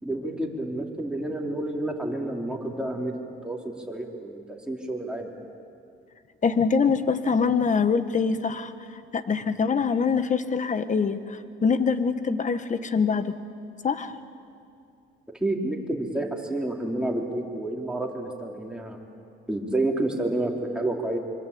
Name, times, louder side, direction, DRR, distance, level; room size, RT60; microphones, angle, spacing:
voice 1, 0.0-3.1 3.4-5.4 15.4-19.0 19.5-21.2, right 1 dB, 5° right, -1 dB, 4.2 m, -29 dB
voice 2, 6.4-8.7 9.1-13.3 13.8-14.1, left 5 dB, 40° left, 11 dB, 1.5 m, -24 dB
25.5 x 25.0 x 8.7 m, 2.5 s
cardioid pair, 90°, 20 cm